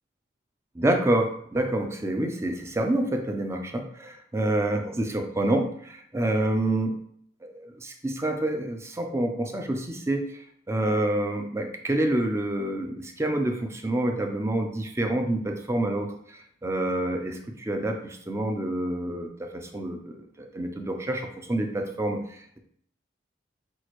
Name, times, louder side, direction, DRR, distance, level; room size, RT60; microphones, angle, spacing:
voice 1, 0.8-7.0 7.4-10.3 10.7-16.1 16.6-22.6, right 1 dB, 15° right, 4 dB, 0.5 m, -27 dB
6.2 x 2.4 x 3.0 m, 0.64 s
head